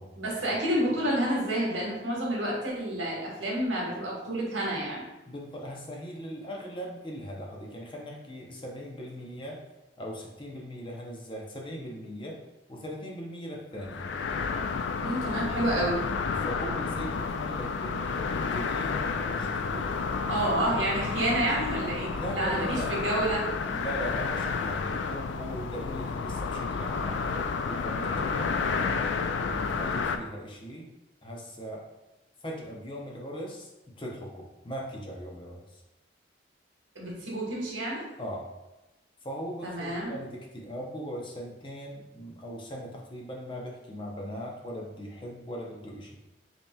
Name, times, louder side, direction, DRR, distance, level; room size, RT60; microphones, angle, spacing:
voice 1, 0.1-5.0 15.0-16.0 20.3-23.5 36.9-38.0 39.6-40.1, right 1 dB, 85° right, -3 dB, 1.3 m, -29 dB
voice 2, 5.3-9.6 10.0-12.4 12.7-14.1 16.4-19.9 22.1-22.9 23.7-27.2 27.6-28.9 29.4-30.9 31.2-31.8 32.4-35.8 38.2-38.4 39.2-46.1, equal, 25° left, -1 dB, 0.6 m, -39 dB
sound 1, 13.8-30.2, left 5 dB, 70° left, 0.3 m, -31 dB
5.4 x 2.9 x 2.2 m, 1.0 s
head